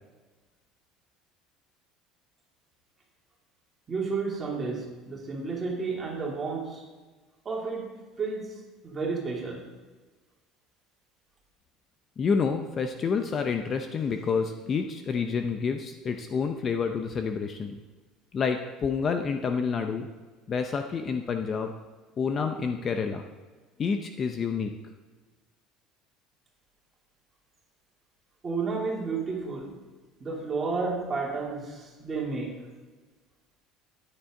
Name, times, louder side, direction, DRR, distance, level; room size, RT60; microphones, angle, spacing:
voice 1, 3.9-6.8 7.4-8.6 8.8-9.7 28.4-29.7 30.2-32.6, right 4 dB, 20° right, -3 dB, 2.9 m, -31 dB
voice 2, 12.2-17.8 18.3-20.1 20.5-21.7 22.2-23.2 23.8-24.7, left 5 dB, 30° left, 6 dB, 0.7 m, -28 dB
13.5 x 9.9 x 3.8 m, 1.3 s
cardioid pair, 155°, 0 cm